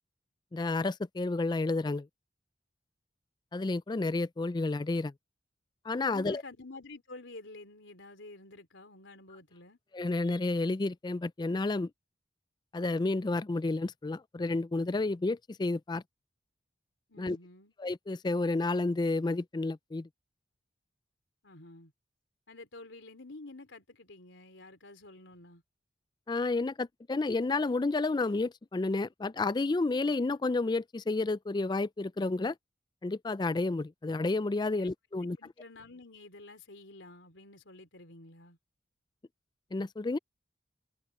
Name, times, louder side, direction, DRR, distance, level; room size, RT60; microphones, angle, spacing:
voice 1, 0.5-2.1 3.5-5.1 5.9-6.4 9.9-11.9 12.7-16.0 17.2-17.4 17.8-20.1 26.3-32.5 33.0-35.4 39.7-40.2, left 3 dB, 25° left, 0.4 m, -31 dB
voice 2, 6.1-9.8 17.1-17.7 21.4-21.9 22.5-25.6 34.8-34.9 35.4-38.6, left 2 dB, 90° left, 3.4 m, -50 dB
head